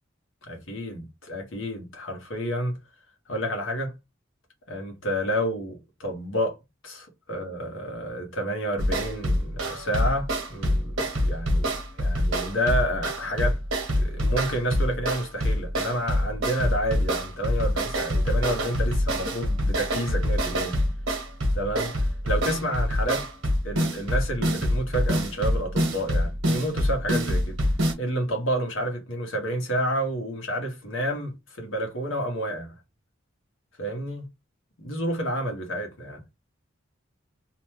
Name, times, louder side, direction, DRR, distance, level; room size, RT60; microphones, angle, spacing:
voice 1, 0.4-2.8 3.3-3.9 4.7-6.5 6.8-13.6 13.9-20.8 21.5-23.2 23.6-27.6 28.0-32.7 33.8-34.2 34.8-36.2, equal, 80° left, 1.1 m, -30 dB
sound 1, 8.8-27.9, equal, 80° right, 1.0 m, -26 dB
2.8 x 2.2 x 3.1 m
head